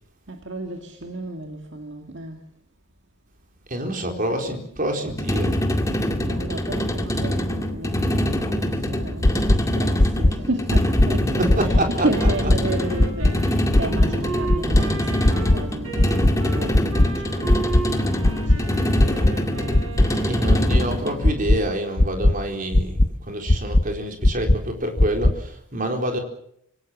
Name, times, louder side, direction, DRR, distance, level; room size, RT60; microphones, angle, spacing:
voice 1, 0.3-2.5 4.0-4.6 6.3-19.5, right 2 dB, 55° right, 2.3 m, -33 dB
voice 2, 3.7-5.6 11.2-12.3 20.3-26.2, right 1 dB, 40° right, 4.2 m, -27 dB
sound 1, 5.1-21.2, equal, 15° left, 2.1 m, -25 dB
sound 2, 9.2-9.6 10.0-10.3 10.7-11.1 11.5-11.8 12.2-12.6 13.0-13.3 13.7-14.1 14.5-14.8 15.2-15.6 16.0-16.3 16.7-17.1 17.5-17.8 18.2-18.6 19.0-19.3 19.7-20.1 20.5-20.8 21.2-21.6 22.0-22.3 22.7-23.1 23.5-23.8 24.2-24.6 25.0-25.3, left 1 dB, 35° left, 0.9 m, -16 dB
Wind instrument woodwind instrument, 12.1-20.8, right 3 dB, 85° right, 6.9 m, -34 dB
26.5 x 17.5 x 7.5 m
head